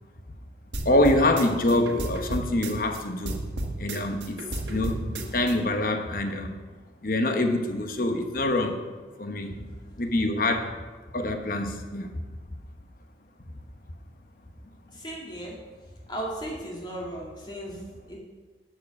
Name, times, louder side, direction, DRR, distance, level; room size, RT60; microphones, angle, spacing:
sound 1, 0.7-3.0 3.3-5.5, right 1 dB, 85° right, 1.5 m, -33 dB
voice 1, 0.8-3.4 3.8-4.4 4.7-6.6 7.0-8.8 9.2-9.7 10.0-10.8 11.1-12.1, left 1 dB, 50° left, 6 dB, 1.0 m, -25 dB
voice 2, 14.9-15.6 16.1-18.2, right 1 dB, 25° left, -2 dB, 2.3 m, -36 dB
12.0 x 7.4 x 5.3 m, 1.4 s
head